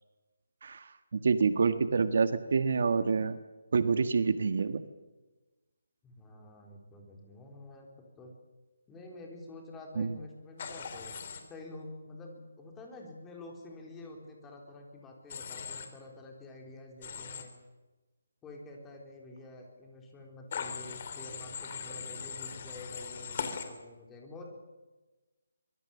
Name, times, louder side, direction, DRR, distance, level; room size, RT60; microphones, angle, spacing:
voice 1, 0.6-3.4 3.7-4.8 10.0-10.1, right 5 dB, 55° right, 10 dB, 1.5 m, -27 dB
voice 2, 6.0-7.9 8.2-8.3 8.9-11.1 11.5-17.5 18.4-24.4, left 2 dB, 10° left, 1 dB, 4.0 m, -48 dB
Human voice / Train, 10.6-11.4 15.3-15.9 17.0-17.4 20.5-23.6, left 6 dB, 35° left, 3.4 m, -39 dB
24.5 x 22.5 x 7.3 m, 1.2 s
hypercardioid pair, 170°, 0 cm